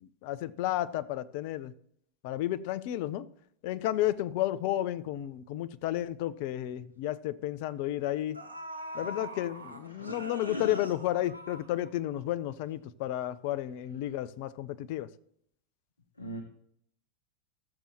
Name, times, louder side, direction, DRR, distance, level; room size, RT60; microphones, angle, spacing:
voice 1, 0.0-1.7 2.2-3.3 3.6-8.4 8.9-15.1, left 13 dB, 50° left, 0.5 m, -32 dB
sound 1, 6.2-6.3 6.6-6.8 7.8-7.9 8.3-12.3 12.6-12.7, equal, 85° right, 1.0 m, -43 dB
voice 2, 9.9-10.8 16.2-16.4, equal, 80° left, 0.9 m, -40 dB
14.5 x 6.8 x 3.0 m
figure-of-eight pair, 90°, 0 cm